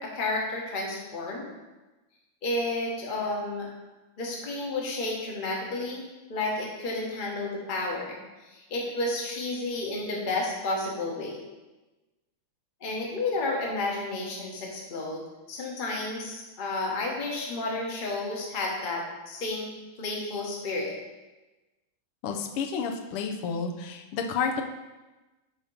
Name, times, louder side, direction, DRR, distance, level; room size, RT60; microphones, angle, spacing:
voice 1, 0.0-1.5 2.4-3.7 4.2-6.0 6.3-8.2 8.5-11.4 12.8-15.2 15.5-19.7 20.0-20.9, left 2 dB, 40° left, -2 dB, 0.8 m, -31 dB
voice 2, 22.2-24.6, left 5 dB, 90° left, 3 dB, 1.6 m, -30 dB
7.1 x 2.8 x 5.4 m, 1.1 s
omnidirectional pair, 2.4 m